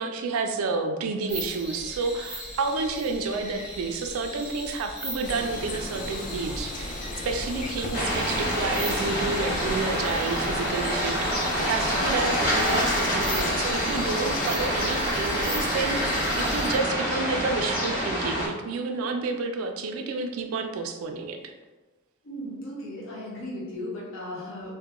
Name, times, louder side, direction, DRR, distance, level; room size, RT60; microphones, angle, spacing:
voice 1, 0.0-16.1 16.4-21.4, right 4 dB, 85° right, 5 dB, 0.3 m, -30 dB
sound 1, 1.3-16.8, equal, 5° right, 0.7 m, -39 dB
sound 2, 5.2-16.7, left 2 dB, 40° left, 0.3 m, -35 dB
sound 3, 7.9-18.5, equal, 90° left, 0.8 m, -27 dB
voice 2, 22.2-24.8, left 1 dB, 65° left, -7 dB, 0.9 m, -36 dB
2.2 x 2.1 x 2.8 m, 1.2 s
head